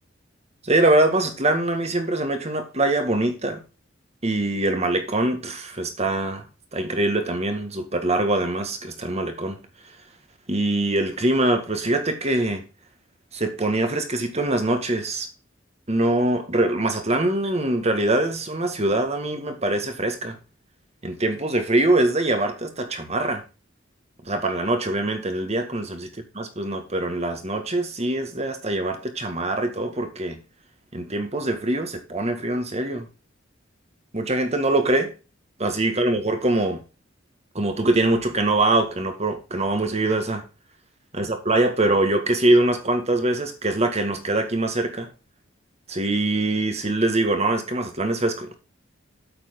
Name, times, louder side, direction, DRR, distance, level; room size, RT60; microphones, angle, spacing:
voice 1, 0.6-3.6 4.2-6.4 6.7-9.6 10.5-12.6 13.3-15.3 15.9-20.4 21.0-23.4 24.3-26.1 26.4-30.4 30.9-33.1 34.1-35.1 35.6-36.8 37.6-40.4 41.1-45.1 45.9-48.5, right 2 dB, 35° right, 1.9 m, -23 dB
8.9 x 7.5 x 3.8 m
head